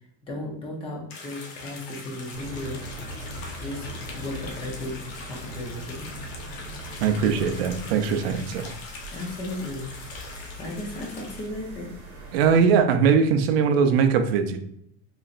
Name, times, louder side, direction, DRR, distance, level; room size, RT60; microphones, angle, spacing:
voice 1, 0.2-2.8 3.6-5.0 5.2-6.1 9.1-9.9 10.3-11.9, left 1 dB, 15° left, 0 dB, 0.6 m, -35 dB
sound 1, 1.1-11.5, left 3 dB, 65° left, 1.0 m, -42 dB
sound 2, 2.3-12.6, equal, 30° right, 1.1 m, -40 dB
voice 2, 7.0-8.7 12.3-14.6, right 6 dB, 65° right, 8 dB, 0.5 m, -21 dB
4.0 x 3.0 x 2.5 m, 0.73 s
supercardioid pair, 175°, 33 cm